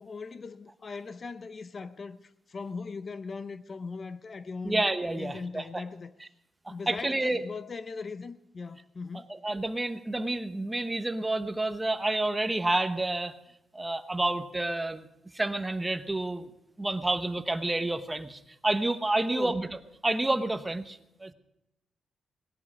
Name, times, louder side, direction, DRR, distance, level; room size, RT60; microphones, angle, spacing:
voice 1, 0.0-4.8 5.1-6.1 6.7-9.3 19.3-19.7, left 4 dB, 35° left, 0.6 m, -39 dB
voice 2, 4.6-5.8 6.6-7.4 9.4-13.3 13.7-15.1 15.3-16.5 16.8-19.8 20.0-21.3, right 2 dB, 15° right, 0.9 m, -29 dB
19.0 x 10.5 x 6.2 m
cardioid pair, 130°, 0 cm